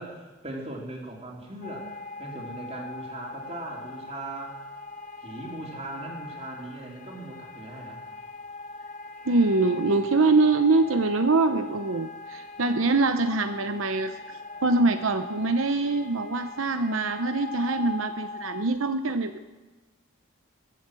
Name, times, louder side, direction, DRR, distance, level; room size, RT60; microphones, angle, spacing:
voice 1, 0.0-4.6 5.2-8.0, right 2 dB, 30° right, -1 dB, 3.4 m, -39 dB
sound 1, 1.6-18.6, left 2 dB, 35° left, 1.5 m, -41 dB
voice 2, 9.3-19.5, right 3 dB, 80° right, 8 dB, 0.8 m, -24 dB
22.0 x 8.5 x 7.6 m, 1.2 s
head